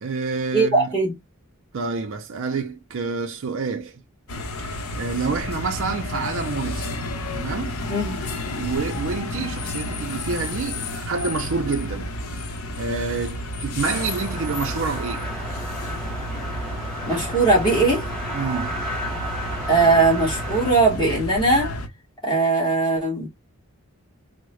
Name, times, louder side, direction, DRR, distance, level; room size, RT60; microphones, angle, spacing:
voice 1, 0.0-0.9 1.7-4.0 4.6-6.9 7.3-7.8 8.6-12.1 12.8-15.3 18.3-18.7, right 4 dB, 60° right, 0.5 m, -28 dB
voice 2, 0.5-1.1 7.9-8.2 17.1-18.1 19.7-21.7 22.2-23.3, right 3 dB, 20° left, 1.3 m, -19 dB
sound 1, 4.3-21.9, left 1 dB, 75° left, 0.7 m, -31 dB
sound 2, 13.9-20.7, right 1 dB, 5° left, 1.4 m, -33 dB
3.6 x 2.1 x 3.0 m
head